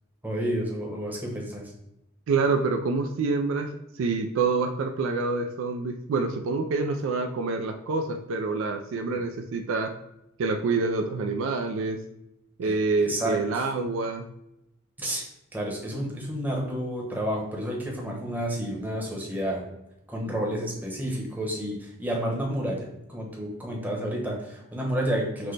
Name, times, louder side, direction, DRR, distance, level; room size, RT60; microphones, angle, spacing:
voice 1, 0.2-1.6 9.1-9.2 12.6-13.4 15.0-15.2 15.5-19.6 20.1-25.5, equal, 10° right, -2 dB, 0.9 m, -30 dB
voice 2, 2.3-9.9 10.4-12.0 12.6-14.3, right 4 dB, 65° right, 6 dB, 0.3 m, -27 dB
5.9 x 2.1 x 3.2 m, 0.85 s
head